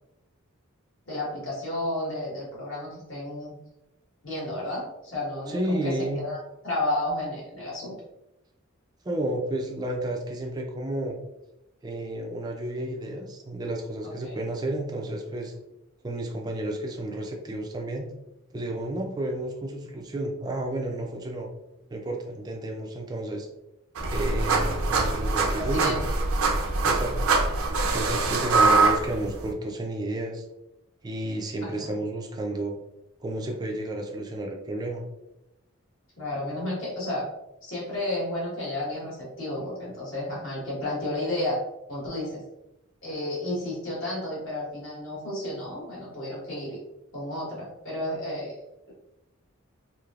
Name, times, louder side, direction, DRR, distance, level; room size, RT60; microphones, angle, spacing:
voice 1, 1.1-3.5 4.2-7.9 14.0-14.3 25.5-26.0 26.6-26.8 31.6-31.9 36.2-37.3 37.6-41.6 41.9-42.4 43.0-46.8 47.1-48.6, left 1 dB, 60° left, -5 dB, 1.4 m, -32 dB
voice 2, 5.5-6.2 9.0-11.2 11.8-15.5 16.0-18.1 18.5-21.5 21.9-23.5 24.1-26.0 26.8-27.3 27.9-30.4 31.0-32.8 33.2-35.0, right 1 dB, 20° right, 1 dB, 0.3 m, -31 dB
Background Printer, 24.0-29.5, right 3 dB, 80° right, 0.5 m, -23 dB
3.2 x 2.7 x 2.4 m, 0.90 s
head